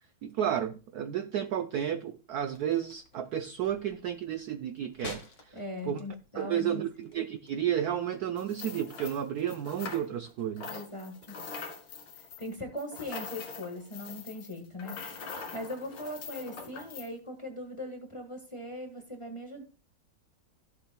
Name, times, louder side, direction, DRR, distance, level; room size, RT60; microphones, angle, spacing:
voice 1, 0.2-5.6 5.8-6.0 6.3-10.8, right 10 dB, 80° right, 0.8 m, -32 dB
sound 1, 2.3-8.2, left 3 dB, 35° left, 2.1 m, -50 dB
voice 2, 5.5-6.8 10.7-11.4 12.4-19.6, left 1 dB, 20° left, 1.1 m, -40 dB
sound 2, 8.4-10.3 10.6-17.1, left 4 dB, 80° left, 2.6 m, -43 dB
14.0 x 7.5 x 2.2 m
omnidirectional pair, 2.3 m